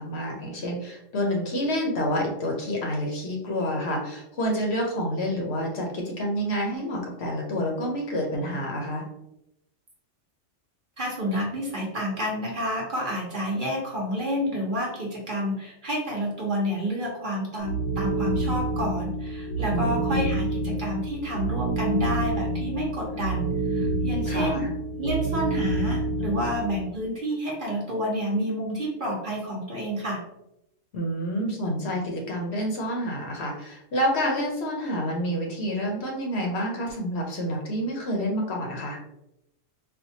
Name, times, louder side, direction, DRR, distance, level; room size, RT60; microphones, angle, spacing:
voice 1, 0.0-9.0 19.7-20.2 24.3-24.7 30.9-39.0, equal, 60° left, 0 dB, 0.9 m, -28 dB
voice 2, 11.0-24.6 25.0-30.2, equal, 45° right, -3 dB, 0.8 m, -29 dB
sound 1, 17.6-26.8, right 2 dB, 90° left, 1.2 m, -28 dB
4.3 x 2.2 x 2.7 m, 0.84 s
omnidirectional pair, 1.4 m